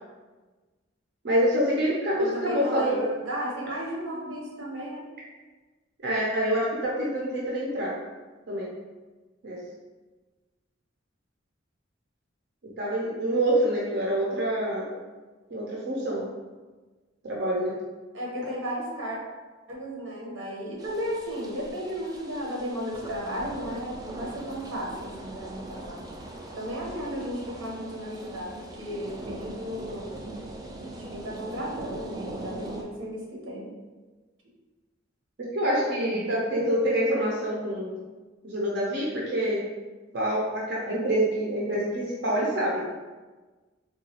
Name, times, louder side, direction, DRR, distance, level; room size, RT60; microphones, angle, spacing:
voice 1, 1.2-3.0 6.0-7.9 8.5-8.7 9.4-9.6 12.8-14.9 15.5-16.2 17.2-17.8 35.4-37.9 38.4-39.6 40.1-42.8, right 1 dB, 60° right, -5 dB, 0.6 m, -26 dB
voice 2, 2.2-5.0 18.1-19.2 19.7-26.0 26.5-30.1 31.0-33.7, equal, 90° right, -3 dB, 0.9 m, -34 dB
sound 1, 20.8-32.8, right 2 dB, 20° right, 0.3 m, -41 dB
3.8 x 2.3 x 2.8 m, 1.3 s
head